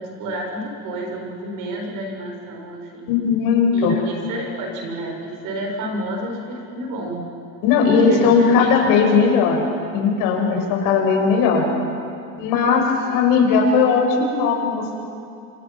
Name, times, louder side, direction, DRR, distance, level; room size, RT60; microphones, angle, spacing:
voice 1, 0.0-3.2 3.7-7.2 7.9-9.4, right 1 dB, 70° right, 0 dB, 7.0 m, -30 dB
voice 2, 3.1-3.9 7.6-9.6 9.9-11.6 12.4-14.9, left 5 dB, 80° left, 1 dB, 6.2 m, -17 dB
28.0 x 27.0 x 6.0 m, 2.5 s
cardioid pair, 165°, 34 cm